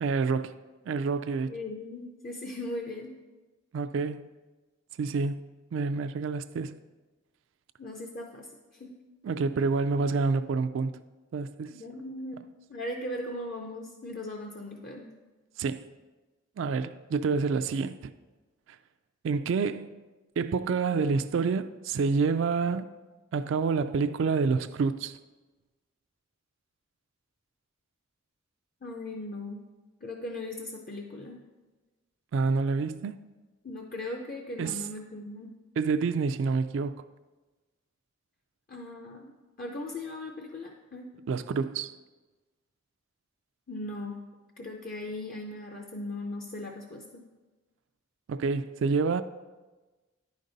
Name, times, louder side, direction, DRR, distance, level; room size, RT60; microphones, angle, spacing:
voice 1, 0.0-0.6 0.9-1.5 3.7-4.3 5.0-5.4 5.7-6.8 9.2-10.9 11.3-11.8 15.6-15.8 16.6-18.1 19.2-20.0 20.4-22.9 23.3-25.2 32.3-33.1 34.6-34.8 35.8-37.0 41.3-42.0 48.3-49.2, right 4 dB, 75° right, 0.3 m, -28 dB
voice 2, 1.5-3.2 7.8-8.9 11.7-12.4 12.7-15.1 28.8-29.6 30.0-31.4 33.6-35.6 38.7-41.1 43.7-47.2, left 1 dB, 45° left, 0.6 m, -38 dB
10.0 x 5.2 x 4.0 m
head